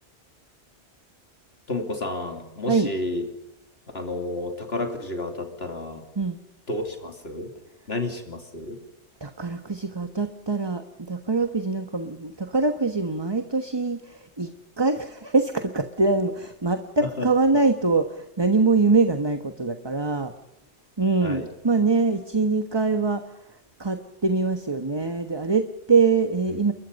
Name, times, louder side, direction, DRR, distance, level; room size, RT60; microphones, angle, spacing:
voice 1, 1.7-3.3 3.9-6.0 6.7-7.5 7.9-8.8 17.2-17.3 17.5-17.6 21.2-21.5, left 2 dB, 60° left, 4 dB, 3.1 m, -31 dB
voice 2, 9.2-10.8 11.1-14.5 14.8-20.3 21.0-23.2 23.8-26.7, right 3 dB, 25° right, 8 dB, 1.3 m, -23 dB
29.5 x 22.0 x 5.4 m, 0.87 s
omnidirectional pair, 1.2 m